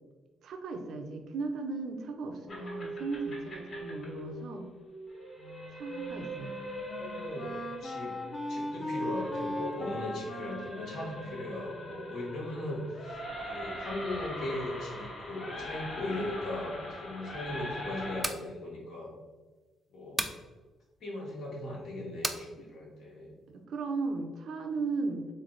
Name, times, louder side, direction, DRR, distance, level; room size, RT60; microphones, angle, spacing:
voice 1, 0.4-4.7 5.7-6.7 23.5-25.3, right 3 dB, 70° right, 4 dB, 0.6 m, -36 dB
sound 1, 2.5-18.2, equal, 55° left, 1.4 m, -42 dB
voice 2, 4.0-4.5 7.0-7.5 7.8-8.1 8.5-19.1 19.9-20.3 21.0-23.4, left 1 dB, 75° left, -3 dB, 1.4 m, -38 dB
Wind instrument woodwind instrument, 5.4-12.6, left 1 dB, 35° left, 0.7 m, -40 dB
sound 2, 18.0-18.5 20.2-20.4 22.2-22.4, right 2 dB, 15° right, 0.4 m, -33 dB
3.5 x 3.3 x 3.8 m, 1.3 s
cardioid pair, 90°, 0 cm